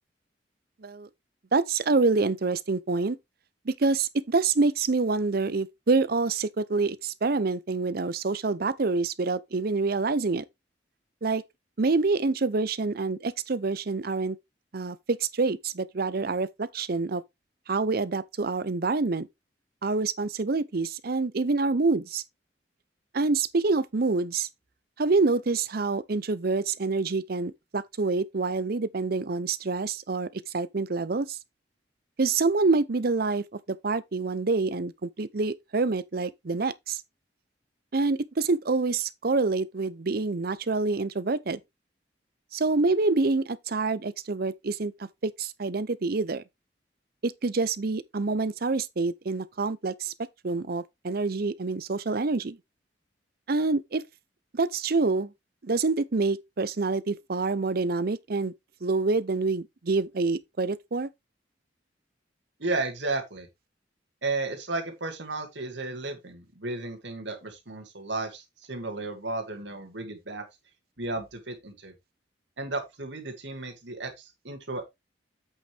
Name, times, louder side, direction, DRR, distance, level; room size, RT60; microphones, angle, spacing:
voice 1, 1.5-3.2 3.7-10.4 11.2-11.4 11.8-14.4 14.7-17.2 17.7-19.3 19.8-22.2 23.1-24.5 25.0-30.3 30.5-31.4 32.2-33.4 33.8-37.0 37.9-41.6 42.5-46.4 47.2-50.1 50.4-52.6 53.5-54.0 54.5-55.3 55.6-58.5 58.8-61.1, right 3 dB, 55° right, 0.7 m, -26 dB
voice 2, 62.6-63.5 64.2-70.4 71.0-71.9 72.6-74.9, right 2 dB, 80° right, 2.3 m, -33 dB
8.3 x 6.5 x 3.4 m
head